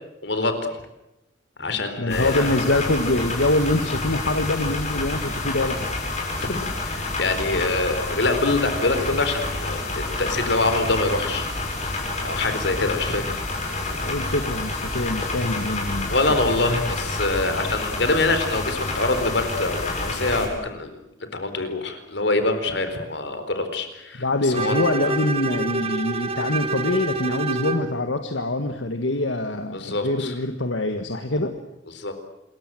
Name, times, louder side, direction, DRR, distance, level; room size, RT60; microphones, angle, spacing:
voice 1, 0.2-0.5 1.6-2.5 6.4-6.5 6.9-11.5 12.2-13.4 13.7-14.1 16.1-25.1 29.7-30.3 31.9-32.1, left 2 dB, 65° left, 8 dB, 4.3 m, -25 dB
voice 2, 2.0-5.9 12.5-12.8 13.9-16.1 24.2-31.5, left 2 dB, 85° left, 7 dB, 1.7 m, -24 dB
sound 1, 2.1-20.5, left 2 dB, 40° left, 7.1 m, -28 dB
Bowed string instrument, 24.5-27.9, right 3 dB, 30° right, 2.3 m, -27 dB
27.5 x 22.0 x 7.8 m, 0.90 s
head